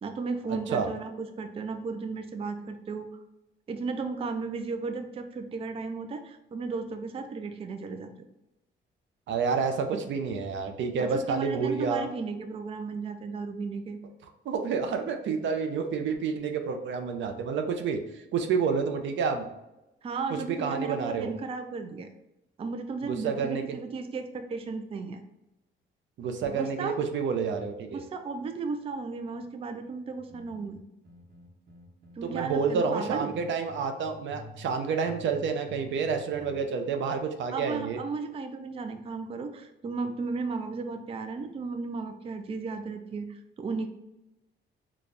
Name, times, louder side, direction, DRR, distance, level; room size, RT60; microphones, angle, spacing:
voice 1, 0.0-3.1 3.7-8.1 11.0-14.0 20.0-22.1 22.6-25.2 26.5-27.0 27.9-30.8 32.2-33.3 37.5-43.9, right 4 dB, 30° right, 6 dB, 0.4 m, -34 dB
voice 2, 9.3-12.1 14.4-18.0 18.3-19.5 20.3-21.3 23.0-23.8 26.2-28.0 32.2-38.0, right 5 dB, 70° right, 6 dB, 0.6 m, -29 dB
sound 1, 30.2-32.7 33.1-34.8 35.0-36.6, left 1 dB, 50° right, 1.0 m, -48 dB
4.0 x 2.3 x 3.3 m, 0.93 s
cardioid pair, 90°, 20 cm